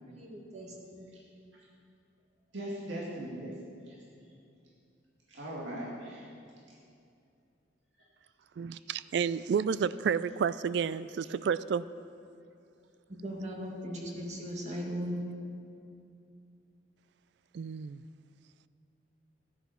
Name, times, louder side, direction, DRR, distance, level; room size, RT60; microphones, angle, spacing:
voice 1, 0.1-1.1 13.2-15.2, equal, 40° right, -1 dB, 2.1 m, -38 dB
voice 2, 2.5-3.5 3.9-4.0 5.3-6.2, right 1 dB, 80° right, -5 dB, 2.2 m, -39 dB
voice 3, 8.6-11.9 17.5-18.0, right 7 dB, 65° right, 16 dB, 0.3 m, -30 dB
14.5 x 10.5 x 5.7 m, 2.5 s
head